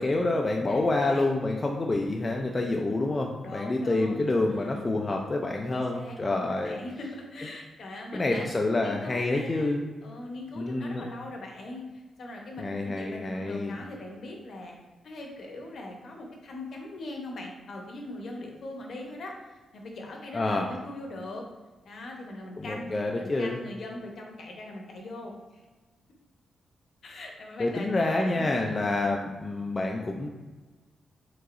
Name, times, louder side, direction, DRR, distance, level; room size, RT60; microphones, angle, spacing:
voice 1, 0.0-6.8 8.1-9.9 10.6-11.1 12.6-13.7 20.3-20.7 22.6-23.6 27.6-30.3, left 2 dB, 25° left, 1 dB, 0.4 m, -28 dB
voice 2, 0.7-1.2 3.4-4.9 5.6-8.5 8.8-9.7 10.0-14.7 15.0-21.4 21.8-22.9 23.2-25.6 27.0-29.0, left 2 dB, 60° left, 1 dB, 0.9 m, -41 dB
4.7 x 3.7 x 2.5 m, 1.2 s
wide cardioid pair, 130°, 0 cm